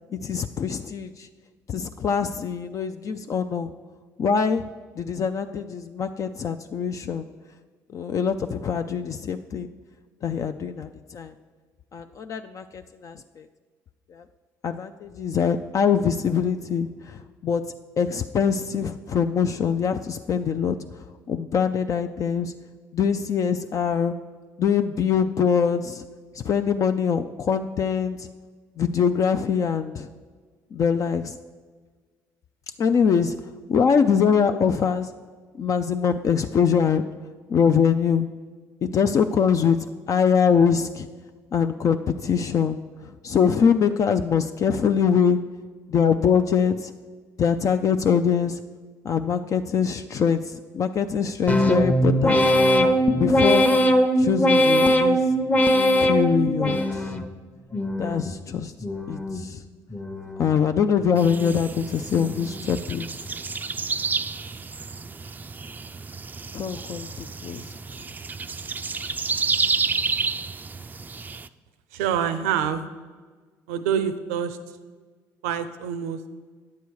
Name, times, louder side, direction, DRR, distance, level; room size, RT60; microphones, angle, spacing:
voice 1, 0.1-1.3 1.7-3.7 4.2-4.6 5.0-7.3 7.9-9.7 10.2-11.3 11.9-13.5 14.1-14.2 14.6-17.6 18.0-22.5 22.9-24.1 24.6-26.1 26.3-28.3 28.8-30.1 30.7-31.4 32.8-33.4 33.7-35.1 35.5-37.0 37.5-38.3 38.8-41.1 41.5-45.4 45.9-46.9 47.4-48.6 49.0-52.5 53.2-53.7 54.2-55.2 56.0-57.1 58.0-58.7 59.1-59.6 60.4-63.3 66.5-67.8, left 7 dB, 45° left, 8 dB, 0.4 m, -23 dB
sound 1, 51.5-57.3 57.7-58.4 58.8-59.5 59.9-60.6 61.0-61.6 62.1-62.6, equal, 20° left, 0.8 m, -21 dB
sound 2, 61.2-71.5, right 4 dB, 25° right, 0.3 m, -30 dB
voice 2, 71.9-72.8 73.7-74.6 75.4-76.3, right 8 dB, 90° right, 11 dB, 0.6 m, -26 dB
9.5 x 6.8 x 4.7 m, 1.5 s
supercardioid pair, 65°, 8 cm